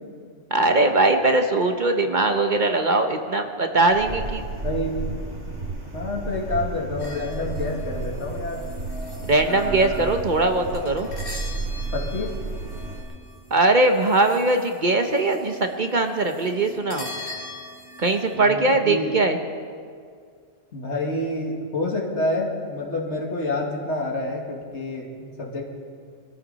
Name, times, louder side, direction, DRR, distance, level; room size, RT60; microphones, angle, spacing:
voice 1, 0.5-4.4 9.3-11.1 13.5-17.1 18.0-19.4, right 2 dB, 45° right, 6 dB, 1.0 m, -21 dB
sound 1, 3.9-13.0, right 3 dB, 75° right, 2.7 m, -32 dB
voice 2, 4.6-5.0 5.9-8.6 9.5-10.0 11.9-12.4 18.3-19.1 20.7-25.6, left 2 dB, 70° left, -1 dB, 2.4 m, -28 dB
sound 2, 7.0-18.4, left 1 dB, 50° left, 2.7 m, -40 dB
23.5 x 13.5 x 4.1 m, 2.1 s
omnidirectional pair, 1.2 m